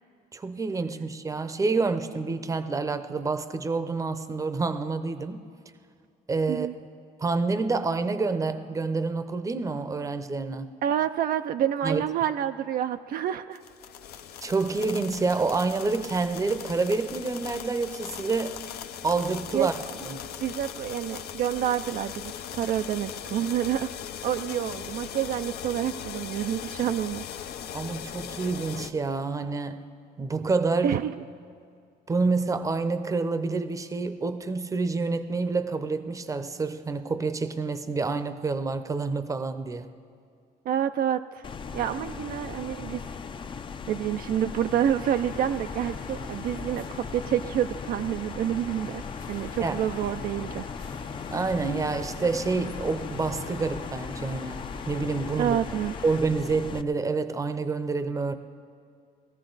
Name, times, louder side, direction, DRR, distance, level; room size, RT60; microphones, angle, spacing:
voice 1, 0.3-5.4 6.3-6.7 7.2-10.7 11.8-12.0 14.4-18.6 19.0-19.7 20.0-20.3 27.7-29.8 30.2-31.0 32.1-39.9 49.6-49.8 51.3-55.6 56.0-58.3, right 4 dB, 20° right, 11 dB, 0.7 m, -28 dB
voice 2, 10.8-13.6 19.5-19.7 20.4-23.9 24.2-27.2 30.8-31.1 40.7-41.4 41.7-43.0 43.9-49.0 49.3-50.7 55.4-55.9, right 10 dB, 60° right, 8 dB, 0.4 m, -28 dB
sound 1, 13.5-28.9, left 9 dB, 70° left, 0.7 m, -39 dB
sound 2, 41.4-56.8, left 5 dB, 30° left, 0.5 m, -38 dB
sound 3, 44.4-56.2, left 5 dB, 50° left, 1.1 m, -42 dB
20.0 x 14.0 x 4.0 m, 2.4 s
cardioid pair, 110°, 17 cm